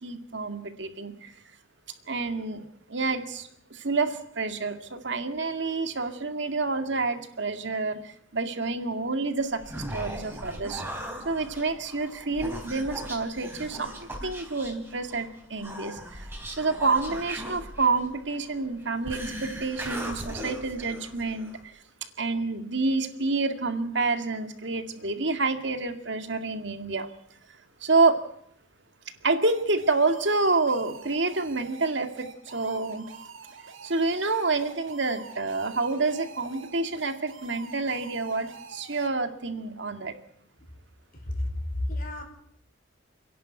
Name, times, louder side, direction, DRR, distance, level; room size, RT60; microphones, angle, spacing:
voice 1, 0.0-1.3 2.1-10.8 11.2-21.7 22.2-27.1 27.8-28.2 29.2-33.1 33.8-40.1, right 3 dB, 65° right, 7 dB, 2.2 m, -28 dB
Human voice, 9.4-21.6, right 1 dB, 10° right, 3.7 m, -39 dB
sound 1, 29.5-39.1, right 5 dB, 90° right, 2.4 m, -46 dB
voice 2, 41.1-42.2, left 1 dB, 45° left, 4 dB, 4.5 m, -31 dB
29.5 x 11.0 x 9.4 m, 0.73 s
head